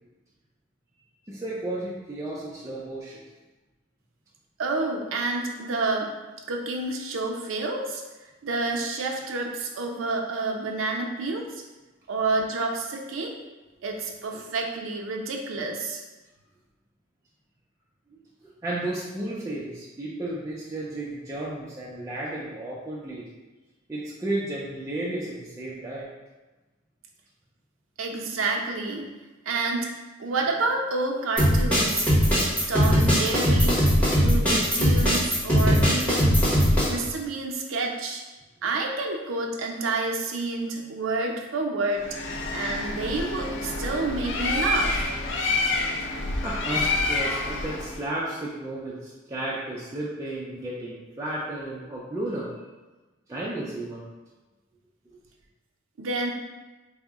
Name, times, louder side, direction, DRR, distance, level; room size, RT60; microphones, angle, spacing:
voice 1, 1.3-3.2 18.1-23.3 23.9-26.1 46.4-52.6 53.3-54.0, right 1 dB, 15° right, -6 dB, 0.4 m, -33 dB
voice 2, 4.6-6.1 6.5-8.0 8.4-11.6 12.1-13.3 13.8-16.0 28.0-29.1 29.5-29.9 30.2-32.1 32.7-33.8 34.1-36.4 36.9-38.2 38.6-42.1 42.5-44.9 56.0-56.3, right 3 dB, 85° right, 1 dB, 0.5 m, -29 dB
sound 1, 31.4-36.9, equal, 5° left, 1.1 m, -20 dB
Bird, 42.0-48.0, left 2 dB, 65° left, 0.5 m, -28 dB
3.6 x 2.1 x 3.5 m, 1.2 s
head